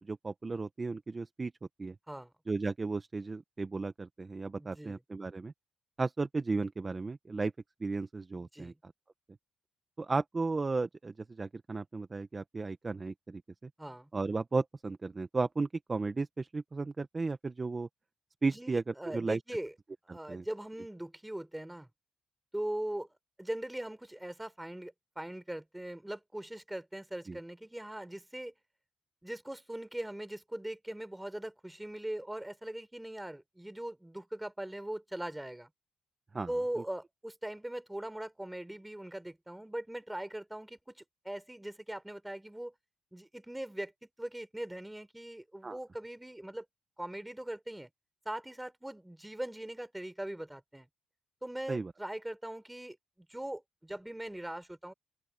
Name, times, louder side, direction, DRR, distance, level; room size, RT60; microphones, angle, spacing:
voice 1, 0.0-1.5 1.8-1.9 2.5-5.5 6.0-7.5 7.8-8.7 10.0-13.7 14.1-17.9 18.4-19.4 20.1-20.4 27.3-27.4 36.3-36.5 45.6-45.8 51.7-51.9, right 3 dB, 25° right, 1.0 m, -34 dB
voice 2, 4.6-5.0 8.4-8.8 13.8-14.1 18.5-19.7 20.0-21.9 22.5-23.1 23.4-28.5 29.2-35.7 36.5-42.7 43.1-46.7 47.0-47.9 48.3-50.9 51.4-54.9, right 1 dB, 5° right, 3.9 m, -40 dB
open air
cardioid pair, 90°, 0 cm